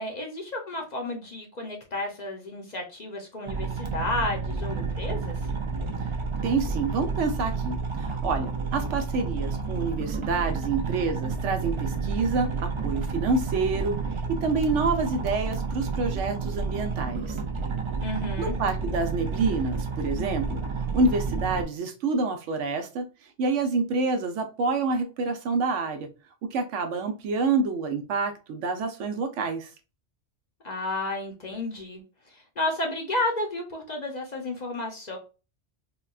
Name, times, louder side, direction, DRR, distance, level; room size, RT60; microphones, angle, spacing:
voice 1, 0.0-5.3 18.0-18.6 30.6-32.0 32.3-35.2, left 2 dB, 45° left, 2 dB, 0.7 m, -32 dB
sound 1, 3.5-21.6, right 4 dB, 45° right, 0.4 m, -30 dB
voice 2, 6.4-17.4 18.4-20.6 20.9-23.1 23.4-26.1 26.4-29.7, right 3 dB, 85° right, 6 dB, 1.0 m, -27 dB
4.0 x 2.2 x 2.3 m, 0.32 s
omnidirectional pair, 1.2 m